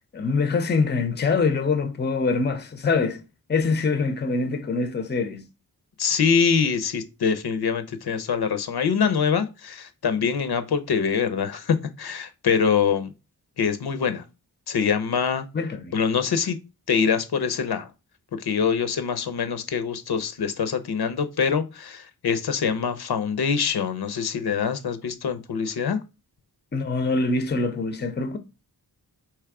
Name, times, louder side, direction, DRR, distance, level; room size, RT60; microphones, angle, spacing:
voice 1, 0.1-3.2 3.5-5.4 15.5-15.9 26.7-28.4, left 4 dB, 25° left, 0.6 m, -24 dB
voice 2, 6.0-13.1 13.6-14.2 14.7-15.5 15.9-16.6 16.9-17.9 18.3-26.0, left 6 dB, 75° left, 0.7 m, -24 dB
3.5 x 3.1 x 4.7 m
wide cardioid pair, 90°, 39 cm